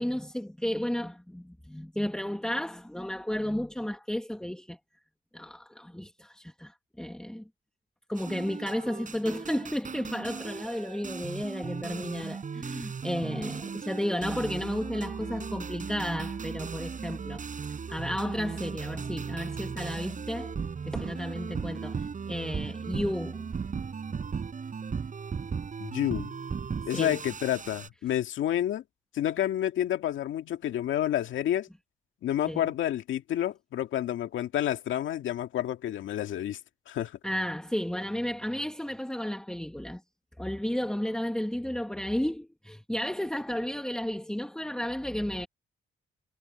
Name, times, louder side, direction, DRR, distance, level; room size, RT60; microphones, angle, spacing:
voice 1, 0.0-4.8 5.3-7.4 8.1-17.4 17.9-20.6 20.9-23.5 26.9-27.2 32.5-32.7 37.2-40.0 40.4-45.5, left 1 dB, 5° left, 1.8 m, -33 dB
sound 1, 8.2-27.9, right 6 dB, 40° right, 5.1 m, -37 dB
voice 2, 25.8-26.3 26.9-28.8 29.1-31.7 32.2-36.6 36.9-37.1, left 11 dB, 75° left, 2.1 m, -29 dB
cardioid pair, 90°, 20 cm